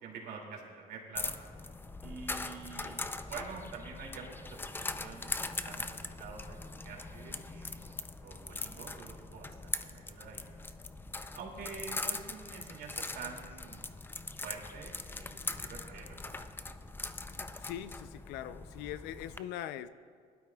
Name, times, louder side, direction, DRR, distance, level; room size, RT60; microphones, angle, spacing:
voice 1, 0.0-1.3 2.0-3.0 3.3-10.5 11.3-13.9 14.4-16.6, right 5 dB, 70° right, -1 dB, 2.5 m, -47 dB
sound 1, 1.2-19.4, left 3 dB, 10° left, 0.4 m, -41 dB
voice 2, 17.6-19.9, left 11 dB, 90° left, 14 dB, 0.5 m, -41 dB
19.5 x 12.0 x 2.3 m, 2.1 s
cardioid pair, 110°, 17 cm